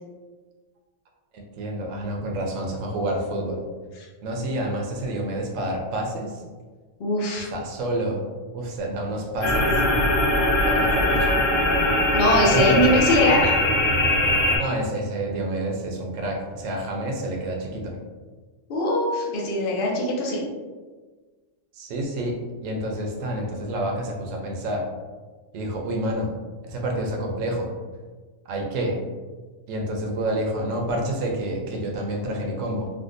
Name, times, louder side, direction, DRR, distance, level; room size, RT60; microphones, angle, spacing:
voice 1, 1.3-3.6 4.2-6.4 7.3-8.2 8.5-9.9 10.6-11.4 12.4-12.8 14.5-18.0 21.7-22.4 22.6-24.9 25.5-26.3 26.6-27.7 28.5-29.0 29.7-32.9, right 1 dB, 85° right, 1 dB, 1.0 m, -28 dB
voice 2, 7.0-7.5 12.1-13.6 18.7-20.4, left 1 dB, 50° left, -2 dB, 0.8 m, -21 dB
sound 1, 9.4-14.6, left 1 dB, 90° left, 1.1 m, -21 dB
3.5 x 2.2 x 2.5 m, 1.4 s
omnidirectional pair, 1.3 m